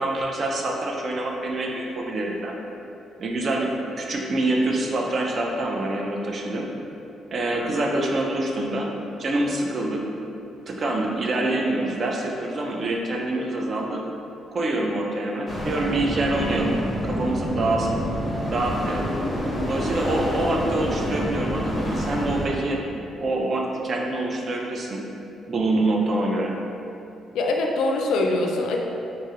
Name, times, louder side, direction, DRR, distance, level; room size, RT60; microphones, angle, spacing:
voice 1, 0.0-2.5 3.2-6.7 7.3-8.9 9.2-10.0 10.7-14.1 14.5-16.8 17.0-18.0 18.5-19.1 19.7-25.0 25.5-26.5, right 2 dB, 45° right, 0 dB, 0.4 m, -26 dB
sound 1, 15.5-22.5, equal, 30° left, 0.6 m, -27 dB
voice 2, 27.3-28.8, left 2 dB, 80° left, 1 dB, 0.3 m, -23 dB
3.4 x 2.0 x 2.8 m, 2.8 s
cardioid pair, 90°, 0 cm